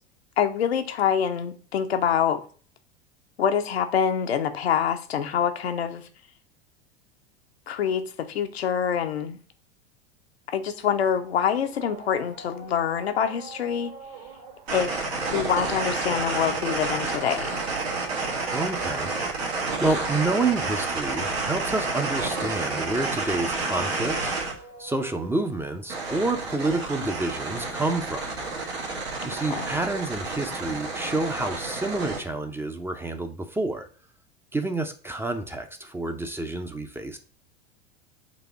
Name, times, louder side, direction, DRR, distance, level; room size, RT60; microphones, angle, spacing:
voice 1, 0.4-2.4 3.4-6.1 7.7-9.4 10.5-13.9 14.7-15.0 15.3-17.6 29.3-29.7, left 8 dB, 80° left, 0.6 m, -26 dB
sound 1, 11.0-27.4, right 6 dB, 60° right, 1.3 m, -46 dB
sound 2, 14.7-24.5 25.9-32.2, right 3 dB, 90° right, 1.3 m, -30 dB
voice 2, 18.5-19.1 19.8-28.3 29.2-33.9 34.5-37.2, right 2 dB, 10° right, 0.4 m, -29 dB
4.1 x 2.6 x 4.6 m
hypercardioid pair, 90°, 31 cm